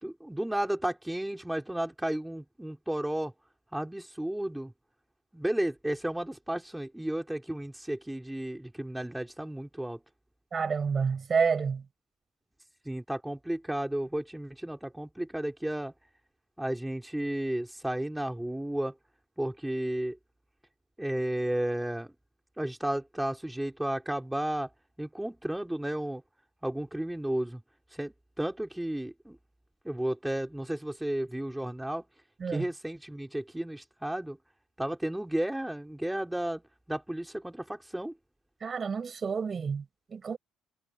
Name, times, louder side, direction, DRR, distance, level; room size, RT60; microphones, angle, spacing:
voice 1, 0.0-3.3 3.7-4.7 5.3-10.0 12.9-15.9 16.6-18.9 19.4-20.2 21.0-22.1 22.6-24.7 25.0-26.2 26.6-27.6 27.9-29.4 29.8-32.0 32.5-34.4 34.8-36.6 36.9-38.1, right 1 dB, 5° right, 5.5 m, -33 dB
voice 2, 10.5-11.8 32.4-32.7 38.6-40.4, right 6 dB, 40° right, 6.7 m, -29 dB
hypercardioid pair, 60°, 0 cm